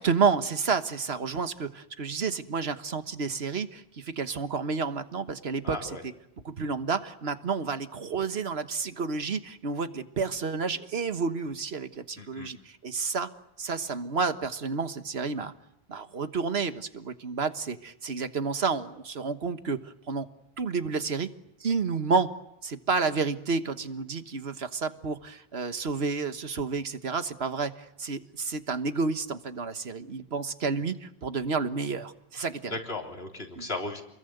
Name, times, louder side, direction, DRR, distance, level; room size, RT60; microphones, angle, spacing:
voice 1, 0.0-5.9 6.4-13.3 13.6-15.5 15.9-20.3 20.6-21.3 21.6-22.3 22.6-27.7 28.0-32.7 33.6-33.7, right 4 dB, 80° right, 10 dB, 1.6 m, -30 dB
voice 2, 5.6-6.0 12.2-12.5 32.7-34.0, left 2 dB, 75° left, 2 dB, 3.9 m, -36 dB
29.0 x 22.0 x 8.0 m, 0.83 s
omnidirectional pair, 1.0 m